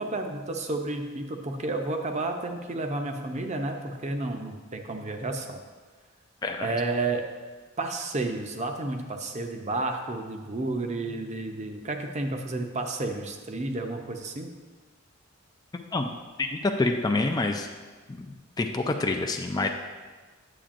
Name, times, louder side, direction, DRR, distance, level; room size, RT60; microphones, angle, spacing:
voice 1, 0.0-5.6 6.6-7.2 7.8-14.5, right 2 dB, 35° right, 4 dB, 0.6 m, -31 dB
voice 2, 6.4-6.7 15.9-16.1 16.4-17.7 18.1-19.7, left 2 dB, 20° left, 4 dB, 0.3 m, -27 dB
8.7 x 7.8 x 2.5 m, 1.4 s
head